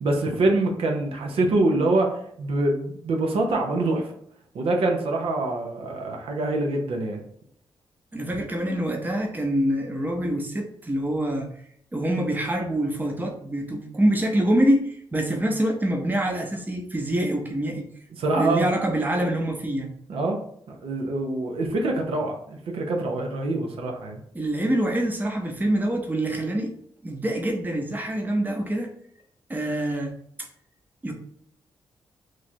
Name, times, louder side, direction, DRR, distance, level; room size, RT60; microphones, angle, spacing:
voice 1, 0.0-4.1 4.5-7.2 18.2-18.7 20.1-20.4 20.7-24.2, right 2 dB, 80° right, 2 dB, 0.7 m, -25 dB
voice 2, 8.1-11.5 11.9-17.9 18.3-19.9 24.3-26.7 27.0-28.9 29.5-30.1 31.0-31.1, right 1 dB, 20° right, 2 dB, 0.7 m, -25 dB
3.1 x 2.4 x 4.3 m, 0.65 s
cardioid pair, 95°, 9 cm